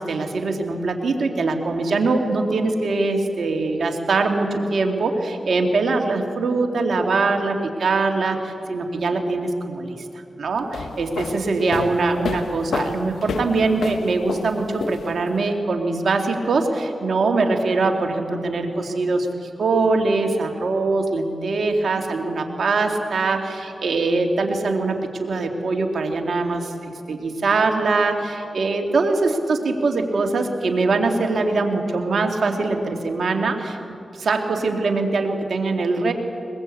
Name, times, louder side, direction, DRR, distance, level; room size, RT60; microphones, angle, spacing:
voice 1, 0.0-9.9 10.4-33.8 34.2-36.1, right 3 dB, 75° right, 3 dB, 2.5 m, -22 dB
sound 1, 10.6-15.4, left 5 dB, 85° left, 1.0 m, -30 dB
22.0 x 21.5 x 8.5 m, 2.6 s
cardioid pair, 45°, 0 cm